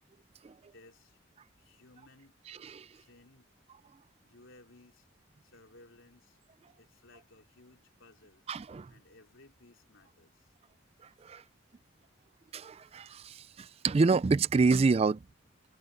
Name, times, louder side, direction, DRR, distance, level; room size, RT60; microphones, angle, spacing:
voice 1, 0.6-1.2 1.6-2.3 2.9-3.5 4.2-5.1 5.4-6.4 6.8-8.4 8.9-10.6, left 2 dB, 90° left, 3.2 m, -59 dB
voice 2, 2.5-2.9 8.5-8.9 11.2-11.4 12.5-15.2, right 4 dB, 30° right, 0.3 m, -27 dB
head